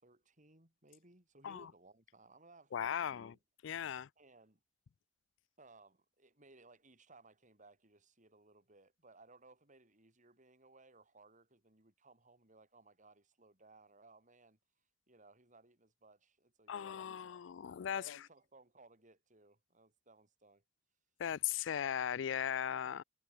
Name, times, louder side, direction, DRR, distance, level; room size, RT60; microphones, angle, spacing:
voice 1, 0.0-3.4 3.8-3.9 4.2-4.6 5.6-14.6 15.1-17.4 17.9-20.6 22.6-22.8, right 3 dB, 40° right, 7.2 m, -63 dB
voice 2, 2.7-3.3 3.6-4.1 16.7-18.2 21.2-23.0, left 9 dB, 70° left, 0.4 m, -38 dB
head